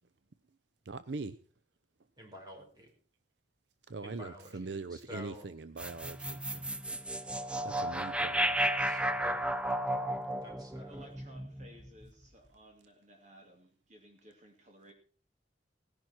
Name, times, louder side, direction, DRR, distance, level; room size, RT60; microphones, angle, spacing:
voice 1, 0.9-1.4 3.9-6.7 7.6-8.4, right 3 dB, 70° right, 13 dB, 0.7 m, -41 dB
voice 2, 2.2-2.9 4.0-5.5 8.8-9.4 10.4-11.1, left 1 dB, 20° right, 0 dB, 5.2 m, -49 dB
sound 1, 5.8-12.1, right 1 dB, 5° right, 0.7 m, -33 dB
voice 3, 10.8-14.9, right 1 dB, 40° right, 2 dB, 2.6 m, -56 dB
17.5 x 10.5 x 4.5 m, 0.40 s
head